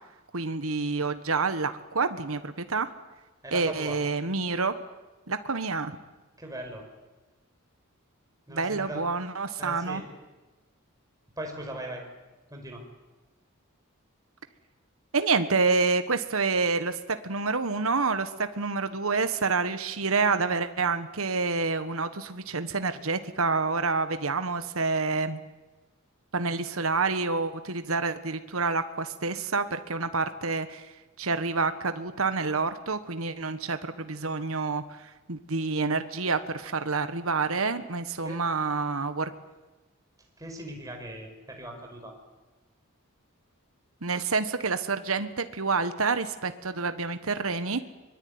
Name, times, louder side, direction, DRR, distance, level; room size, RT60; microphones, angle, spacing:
voice 1, 0.3-2.9 3.5-4.7 5.3-6.0 8.5-10.0 15.1-25.4 26.3-39.3 44.0-47.8, right 4 dB, 70° right, 10 dB, 1.4 m, -28 dB
voice 2, 3.4-4.0 6.4-6.9 8.5-9.0 9.6-10.1 11.4-12.0 12.5-12.8 38.2-38.4 40.4-42.1, right 1 dB, 15° right, 2 dB, 5.3 m, -39 dB
24.0 x 22.0 x 9.7 m, 1.2 s
head